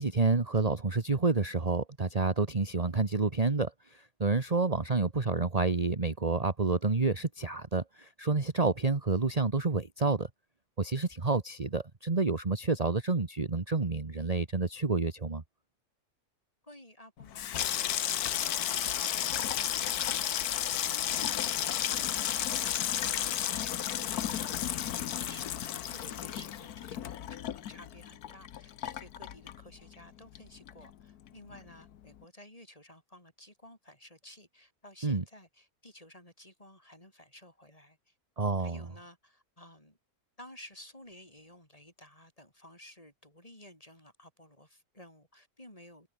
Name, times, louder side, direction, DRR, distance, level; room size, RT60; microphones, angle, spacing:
voice 1, 0.0-10.3 10.8-15.4 35.0-35.2 38.4-38.9, right 3 dB, 25° right, 1.5 m, -29 dB
voice 2, 16.6-38.1 38.6-40.0 40.4-46.1, left 1 dB, 25° left, 7.6 m, -54 dB
Water tap faucet / Sink (filling or washing), 17.2-30.1 30.3-31.0 31.3-31.6, left 10 dB, 90° left, 1.5 m, -33 dB
omnidirectional pair, 1.6 m